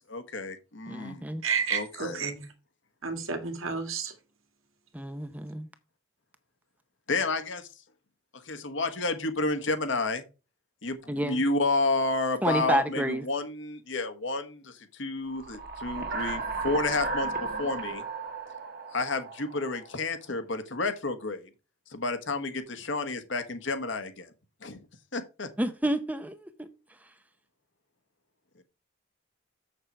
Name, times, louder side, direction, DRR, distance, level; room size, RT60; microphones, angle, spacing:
voice 1, 0.1-1.2 1.7-2.2 7.1-7.7 8.5-10.2 10.8-17.3 17.6-18.0 18.9-21.5 21.9-24.3 24.6-24.8 25.1-25.5, left 3 dB, 65° left, 1.3 m, -30 dB
voice 2, 0.9-1.4 4.9-5.7 11.1-11.4 12.4-13.2 25.6-26.7, right 1 dB, 5° right, 0.6 m, -29 dB
voice 3, 1.4-2.5 3.0-4.1, right 5 dB, 85° right, 1.8 m, -31 dB
sound 1, 15.3-20.0, right 4 dB, 50° right, 1.3 m, -35 dB
7.3 x 6.7 x 4.5 m
head